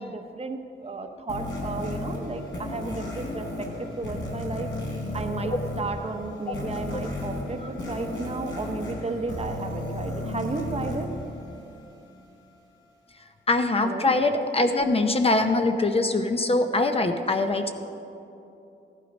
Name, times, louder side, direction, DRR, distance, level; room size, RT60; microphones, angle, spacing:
voice 1, 0.0-4.7 5.1-11.1 13.8-14.1, right 3 dB, 30° right, 5 dB, 0.9 m, -33 dB
sound 1, 1.3-12.1, left 1 dB, 70° left, 3.6 m, -34 dB
voice 2, 13.5-17.7, left 2 dB, 30° left, 6 dB, 0.7 m, -23 dB
15.0 x 11.5 x 5.3 m, 2.9 s
wide cardioid pair, 135°, 20 cm